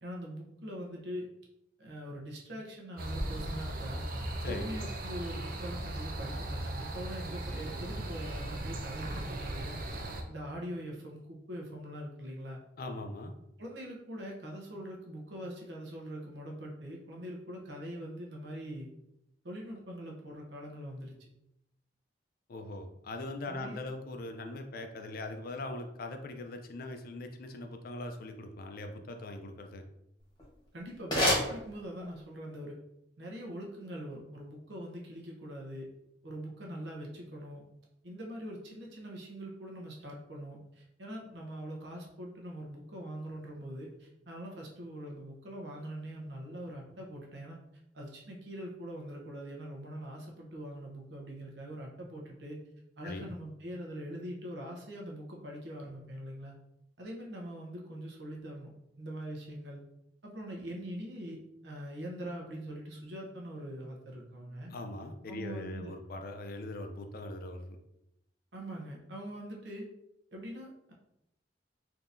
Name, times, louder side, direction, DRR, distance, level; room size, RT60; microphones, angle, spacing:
voice 1, 0.0-1.3 1.8-4.0 4.5-9.8 10.3-12.6 13.6-18.9 19.4-21.2 23.5-23.8 30.7-32.8 33.2-35.9 36.2-37.6 38.0-47.6 47.9-52.6 53.0-56.5 57.0-58.7 59.0-59.8 60.2-64.7 65.3-65.9 68.5-69.9 70.3-70.9, equal, 70° right, -1 dB, 0.9 m, -43 dB
sound 1, 3.0-10.2, right 1 dB, 55° right, 0.5 m, -37 dB
voice 2, 12.8-13.3 22.5-29.8 53.0-53.3 64.7-67.8, left 2 dB, 55° left, 5 dB, 0.4 m, -41 dB
sound 2, 30.2-32.3, left 1 dB, 25° left, 1.1 m, -32 dB
3.6 x 2.8 x 2.6 m, 0.82 s
head